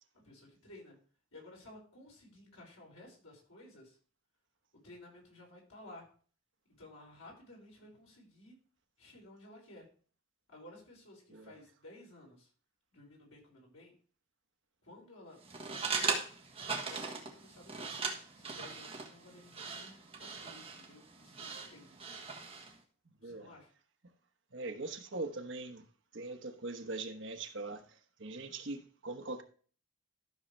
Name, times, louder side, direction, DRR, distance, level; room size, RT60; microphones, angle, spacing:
voice 1, 0.1-1.0 1.3-4.0 4.7-6.1 6.8-8.6 9.0-9.9 10.5-12.5 12.9-14.0 14.8-16.2 16.8-18.0 18.3-21.9 23.2-23.7, left 1 dB, 85° left, 5.3 m, -55 dB
sound 1, 15.4-22.8, right 5 dB, 25° right, 1.5 m, -39 dB
voice 2, 23.2-23.5 24.5-25.8 26.1-29.4, right 2 dB, 55° right, 1.2 m, -41 dB
13.0 x 6.5 x 3.3 m
head